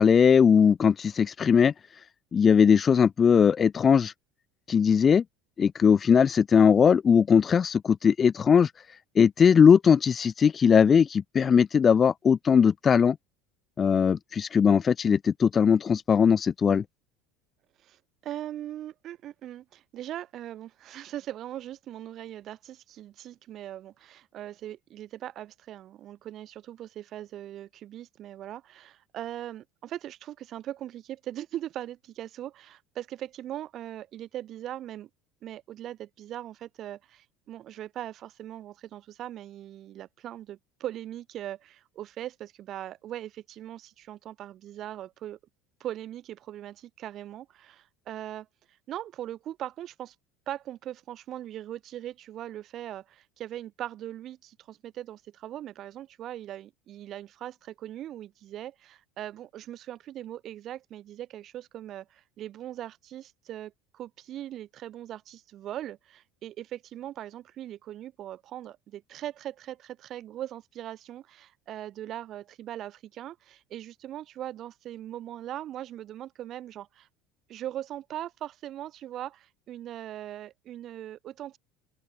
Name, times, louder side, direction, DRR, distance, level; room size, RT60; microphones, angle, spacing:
voice 1, 0.0-1.7 2.3-4.1 4.7-5.2 5.6-8.7 9.2-13.2 13.8-16.8, left 7 dB, 30° left, 0.6 m, -20 dB
voice 2, 17.8-35.1 35.4-45.4 45.8-48.5 48.9-50.1 50.5-77.1 77.5-81.6, right 12 dB, 45° right, 4.6 m, -40 dB
open air
supercardioid pair, 120°, 0 cm